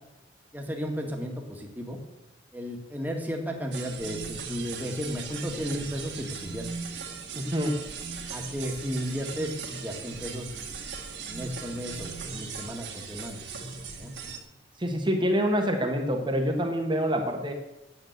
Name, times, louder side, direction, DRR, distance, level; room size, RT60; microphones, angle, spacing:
voice 1, 0.5-2.0 2.5-6.7 8.3-10.9 11.3-13.4 14.0-14.1, equal, 10° right, 1 dB, 1.8 m, -34 dB
sound 1, 3.7-14.4, right 5 dB, 65° right, 2.1 m, -38 dB
voice 2, 7.3-7.8 14.8-17.5, equal, 25° right, 3 dB, 1.3 m, -26 dB
9.2 x 8.3 x 8.0 m, 0.96 s
head